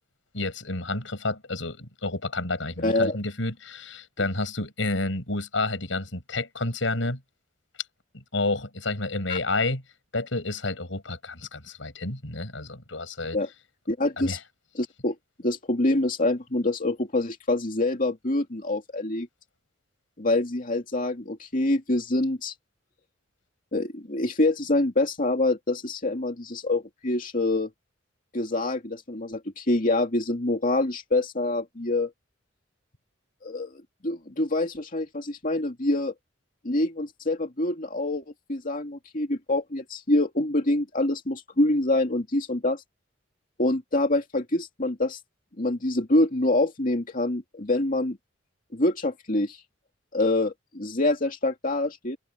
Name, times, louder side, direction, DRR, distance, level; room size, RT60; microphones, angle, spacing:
voice 1, 0.3-7.2 8.1-9.8 10.1-13.4 14.2-14.4, left 2 dB, 90° left, 6.0 m, -30 dB
voice 2, 2.8-3.2 9.3-9.4 13.3-13.5 13.9-14.4 14.7-19.3 20.2-22.5 23.7-27.7 28.3-32.1 33.4-36.1 36.6-42.8 43.6-45.2 45.6-48.2 48.7-49.6 50.1-52.2, left 2 dB, 45° left, 2.4 m, -26 dB
head